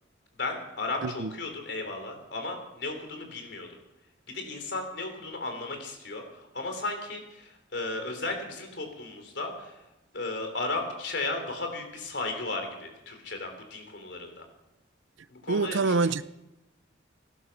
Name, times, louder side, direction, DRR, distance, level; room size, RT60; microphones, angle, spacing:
voice 1, 0.4-3.7 4.3-9.8 10.1-14.4 15.3-16.1, left 2 dB, 70° left, 3.3 m, -35 dB
voice 2, 1.0-1.3 15.5-16.2, right 3 dB, 85° right, 0.6 m, -26 dB
18.0 x 11.5 x 5.8 m
head